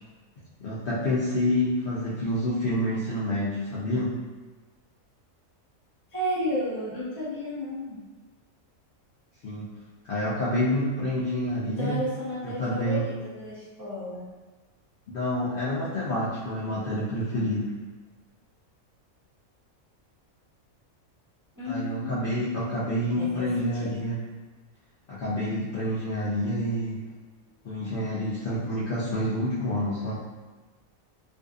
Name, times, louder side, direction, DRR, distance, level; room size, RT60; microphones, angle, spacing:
voice 1, 0.6-4.2 9.4-9.7 10.1-12.0 12.4-13.0 15.1-17.7 21.7-24.2 25.1-27.0 27.6-30.2, left 1 dB, 70° left, -8 dB, 0.5 m, -28 dB
voice 2, 6.1-8.0 11.6-14.2 21.6-22.4 23.2-23.9, equal, 30° right, -11 dB, 0.3 m, -32 dB
2.6 x 2.3 x 2.3 m, 1.3 s
omnidirectional pair, 1.4 m